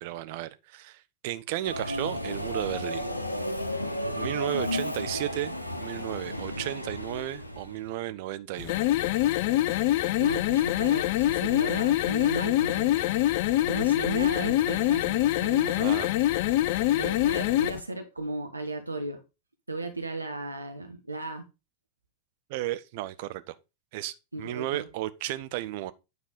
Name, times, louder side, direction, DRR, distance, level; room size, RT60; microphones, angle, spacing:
voice 1, 0.0-3.1 4.2-5.5 5.8-8.8 15.8-16.1 22.5-23.6 23.9-25.9, right 15 dB, 50° right, 0.7 m, -34 dB
Subway metro underground, 1.6-7.9, left 1 dB, 85° left, 1.0 m, -33 dB
sound 1, 8.6-17.8, left 14 dB, 50° left, 0.4 m, -25 dB
voice 2, 10.2-12.9 13.7-15.8 17.0-19.2 19.7-21.5 24.3-24.8, right 3 dB, 85° right, 1.1 m, -36 dB
9.6 x 4.3 x 5.2 m
figure-of-eight pair, 90°, 0 cm